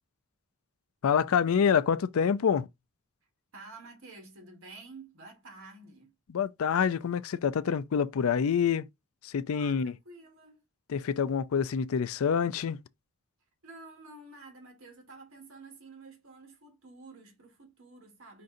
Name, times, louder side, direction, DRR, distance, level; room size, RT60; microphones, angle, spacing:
voice 1, 1.0-2.7 6.3-8.9 9.2-9.9 10.9-12.8, left 7 dB, 80° left, 0.4 m, -26 dB
voice 2, 3.5-6.1 9.5-10.6 13.6-18.4, right 3 dB, 70° right, 1.7 m, -50 dB
5.1 x 2.6 x 3.8 m
head